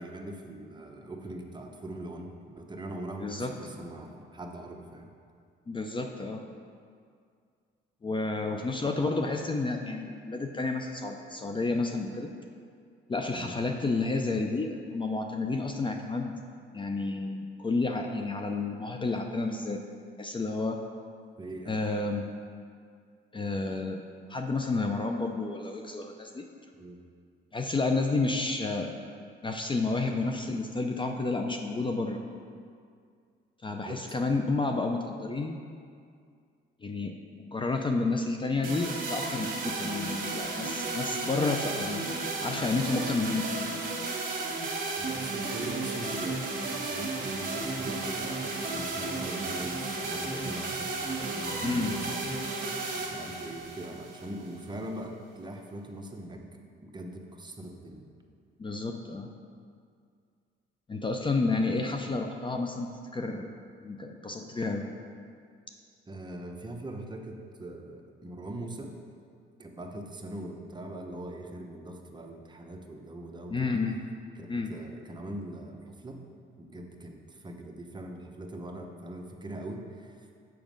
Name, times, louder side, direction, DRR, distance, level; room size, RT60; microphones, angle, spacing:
voice 1, 0.0-5.1 13.3-13.5 21.4-21.8 26.8-27.0 33.7-34.0 45.0-52.2 52.7-56.5 56.8-58.1 66.1-69.0 69.6-73.8 74.3-76.2 76.6-80.3, right 1 dB, 20° right, 2 dB, 0.9 m, -41 dB
voice 2, 3.2-3.5 5.7-6.4 8.0-12.3 13.1-16.3 16.7-19.8 20.2-20.8 21.7-22.2 23.3-24.0 24.3-26.4 27.5-28.9 29.4-32.2 33.6-35.6 36.8-42.0 42.4-43.7 51.6-51.9 58.6-59.3 60.9-63.5 63.8-64.9 73.5-74.0 74.5-74.7, left 3 dB, 25° left, 4 dB, 0.5 m, -30 dB
sound 1, 38.6-54.7, right 3 dB, 45° right, 1.5 m, -33 dB
7.2 x 6.0 x 5.2 m, 2.2 s
cardioid pair, 90°, 20 cm